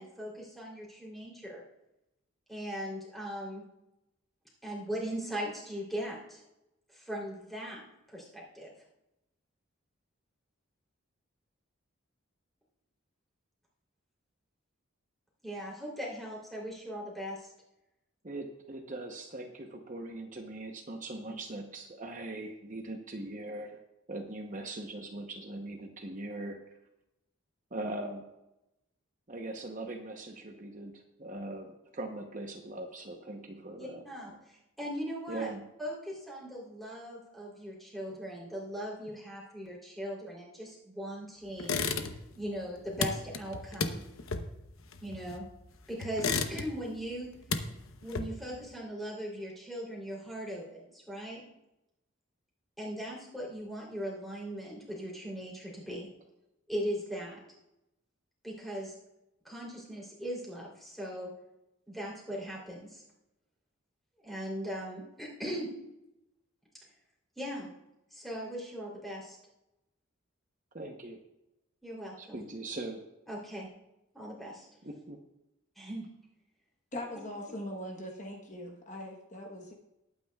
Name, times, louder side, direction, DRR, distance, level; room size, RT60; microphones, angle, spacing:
voice 1, 0.0-1.6 2.5-3.6 4.6-6.4 6.9-7.8 8.1-8.7 15.4-17.5 33.8-35.5 35.8-44.0 45.0-45.4 45.9-47.3 48.0-51.4 52.8-56.1 56.7-57.4 58.4-58.9 59.4-61.3 61.9-63.0 64.2-65.7 67.4-67.7 68.1-69.4 71.8-72.4 73.3-73.7 74.1-74.7 75.7-76.1, equal, ahead, -4 dB, 3.1 m, -39 dB
voice 2, 18.2-23.8 24.1-26.6 27.7-28.2 29.3-34.0 35.3-35.7 70.7-71.2 72.2-73.0 74.8-75.2, right 2 dB, 35° right, 3 dB, 0.8 m, -40 dB
sound 1, 41.6-42.4 42.6-45.6 46.0-46.9 47.2-48.6, left 4 dB, 75° left, 0.8 m, -33 dB
voice 3, 76.9-79.7, left 1 dB, 35° left, 1 dB, 1.1 m, -41 dB
19.5 x 9.1 x 2.3 m, 0.90 s
head